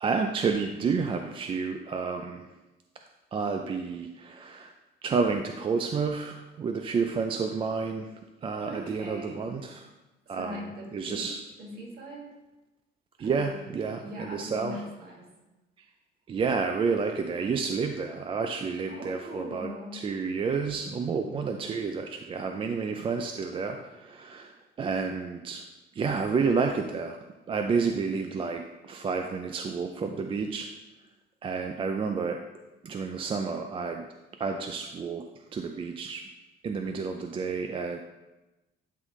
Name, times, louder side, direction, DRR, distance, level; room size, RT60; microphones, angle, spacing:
voice 1, 0.0-2.5 3.3-4.7 5.0-8.1 8.4-9.8 10.3-10.6 10.9-11.4 13.2-14.8 16.3-25.6 25.9-27.2 27.5-30.7 31.4-32.4 32.8-34.1 34.4-35.2 35.5-36.2 36.6-38.0, right 5 dB, 30° right, 5 dB, 0.3 m, -30 dB
voice 2, 8.7-9.5 10.3-11.3 11.6-12.3 13.2-13.7 14.0-15.2 18.9-20.0, equal, 55° right, -1 dB, 1.8 m, -41 dB
11.0 x 4.0 x 3.1 m, 1.1 s
cardioid pair, 140°, 20 cm